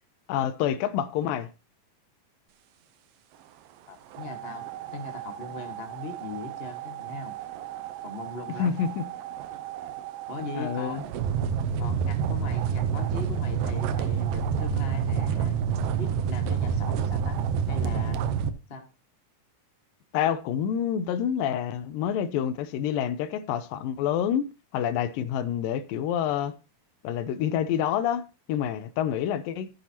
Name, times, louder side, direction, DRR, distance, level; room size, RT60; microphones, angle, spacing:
voice 1, 0.3-1.5 8.6-9.1 10.6-11.0 20.1-24.5 24.7-26.6 27.0-29.7, left 9 dB, 85° left, 2.4 m, -27 dB
voice 2, 3.9-7.3 8.0-8.8 10.3-11.2 11.8-15.6 16.0-17.4 17.7-18.2 18.7-18.8, left 3 dB, 50° left, 0.7 m, -39 dB
sound 1, 4.1-18.5, right 7 dB, 80° right, 2.4 m, -29 dB
14.0 x 8.1 x 2.8 m
omnidirectional pair, 3.9 m